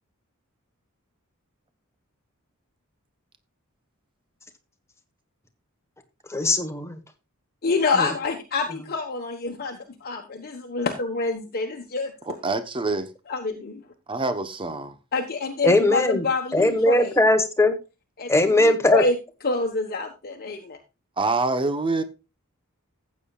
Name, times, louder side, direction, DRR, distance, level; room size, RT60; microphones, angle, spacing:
voice 1, 6.3-7.0 8.0-8.1 15.6-16.2 16.5-17.8 18.3-19.0, left 1 dB, 15° left, 1.4 m, -19 dB
voice 2, 7.6-12.1 13.3-13.8 15.1-17.1 18.2-19.2 19.4-20.8, left 3 dB, 45° left, 1.3 m, -27 dB
voice 3, 12.3-13.1 14.1-15.0 21.2-22.0, right 3 dB, 25° right, 1.0 m, -26 dB
15.0 x 8.5 x 2.4 m
head